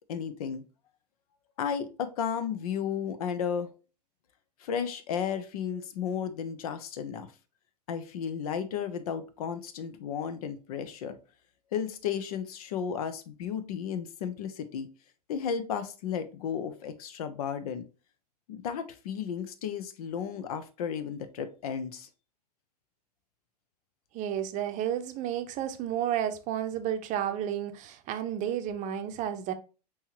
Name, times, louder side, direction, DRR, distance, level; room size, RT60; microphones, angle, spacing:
voice 1, 0.1-0.6 1.6-3.7 4.6-7.3 7.9-11.2 11.7-14.9 15.3-17.8 18.5-22.1, left 7 dB, 60° left, 0.7 m, -33 dB
voice 2, 24.1-29.5, right 10 dB, 35° right, 0.7 m, -31 dB
5.5 x 3.1 x 2.9 m
hypercardioid pair, 95°, 21 cm